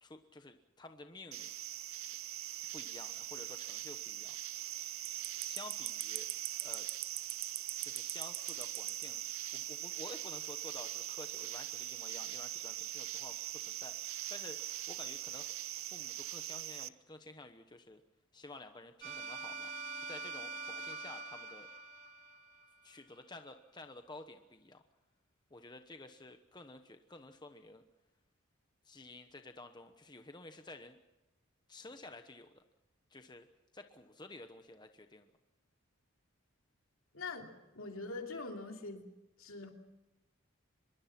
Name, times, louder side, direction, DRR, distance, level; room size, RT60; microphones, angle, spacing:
voice 1, 0.0-1.5 2.7-4.4 5.4-6.3 6.6-6.9 7.8-9.2 9.5-14.6 14.9-18.0 18.3-19.7 20.1-21.7 22.8-24.8 25.5-27.8 28.8-31.0 31.7-32.6 33.1-33.5 33.7-35.3, left 2 dB, 20° left, 7 dB, 1.0 m, -52 dB
sound 1, 1.3-16.9, right 14 dB, 70° right, 0.7 m, -41 dB
sound 2, 19.0-22.9, right 4 dB, 40° right, 3.8 m, -44 dB
voice 2, 37.1-39.0 39.4-39.7, left 3 dB, 70° left, 3 dB, 2.9 m, -43 dB
24.5 x 22.0 x 6.0 m, 1.0 s
head